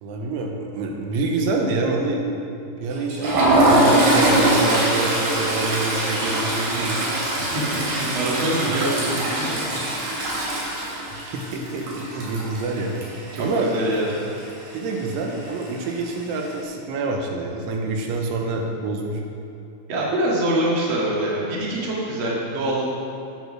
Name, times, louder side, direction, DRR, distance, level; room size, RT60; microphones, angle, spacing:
voice 1, 0.0-2.2 2.7-7.0 8.7-9.3 11.1-12.9 13.4-13.8 14.7-19.2, right 3 dB, 85° right, 1 dB, 3.5 m, -27 dB
Toilet flush, 2.9-13.7 14.0-14.2 14.5-14.7 15.6-16.1, right 1 dB, 65° right, 4.5 m, -22 dB
voice 2, 7.5-8.9 9.2-9.6 13.3-14.3 19.9-22.8, right 1 dB, 40° right, -5 dB, 2.1 m, -24 dB
10.0 x 9.0 x 6.2 m, 2.8 s
omnidirectional pair, 5.3 m